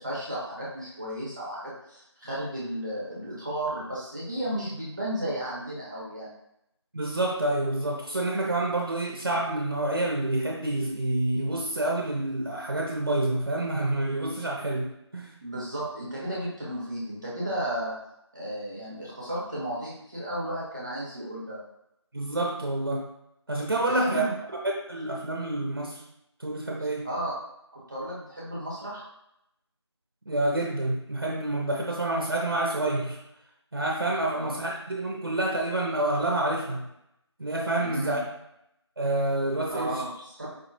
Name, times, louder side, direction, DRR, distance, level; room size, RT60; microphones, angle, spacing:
voice 1, 0.0-6.3 15.4-17.9 18.3-21.6 23.9-24.3 26.8-27.3 27.7-29.0 34.3-34.6 37.8-38.2 39.7-40.5, right 1 dB, 15° right, -7 dB, 0.7 m, -34 dB
voice 2, 6.9-14.9 15.1-15.3 22.1-23.1 23.5-24.2 24.5-24.6 24.9-26.0 26.4-27.1 30.3-33.2 33.7-36.8 37.4-38.2 39.0-40.0, right 2 dB, 50° right, 0 dB, 0.6 m, -28 dB
4.7 x 3.0 x 2.8 m, 0.79 s
figure-of-eight pair, 175°, 15 cm